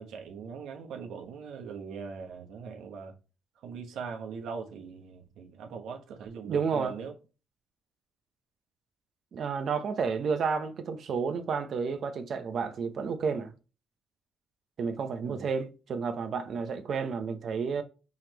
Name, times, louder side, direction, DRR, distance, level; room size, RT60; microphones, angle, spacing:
voice 1, 0.0-3.1 3.6-7.1 15.2-15.5, right 6 dB, 80° right, 1.2 m, -41 dB
voice 2, 6.4-7.0 9.3-13.5 14.8-17.8, right 5 dB, 60° right, 0.8 m, -31 dB
5.5 x 3.3 x 2.9 m
cardioid pair, 90°, 0 cm